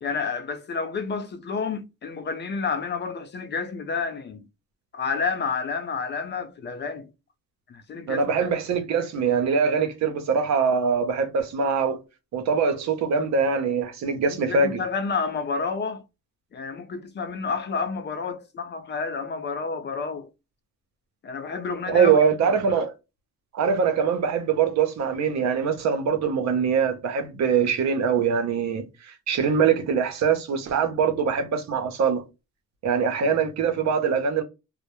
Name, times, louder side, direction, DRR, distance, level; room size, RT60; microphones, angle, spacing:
voice 1, 0.0-4.5 4.9-7.1 7.7-8.5 14.3-16.0 16.5-20.3 21.2-22.5, left 5 dB, 35° left, 0.5 m, -30 dB
voice 2, 8.1-12.0 12.3-14.8 21.9-22.9 23.5-32.2 32.8-34.4, right 6 dB, 65° right, 0.7 m, -23 dB
2.1 x 2.0 x 2.9 m
cardioid pair, 90°, 30 cm